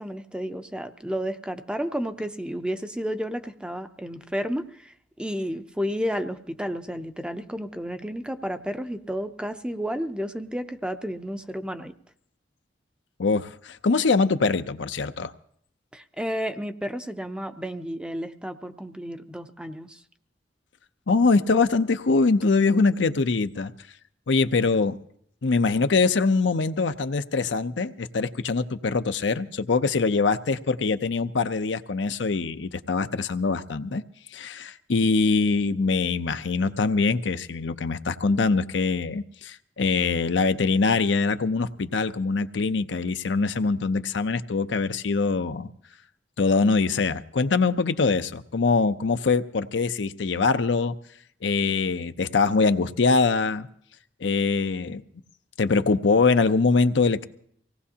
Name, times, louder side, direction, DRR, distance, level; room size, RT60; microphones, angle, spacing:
voice 1, 0.0-11.9 15.9-20.0, equal, 5° right, 8 dB, 0.6 m, -32 dB
voice 2, 13.2-15.3 21.1-23.7 24.3-25.0 25.4-34.0 34.3-45.7 46.4-50.9 51.4-53.7 54.2-55.0 55.6-57.2, left 4 dB, 75° left, 10 dB, 0.6 m, -23 dB
24.5 x 18.0 x 2.8 m, 0.65 s
head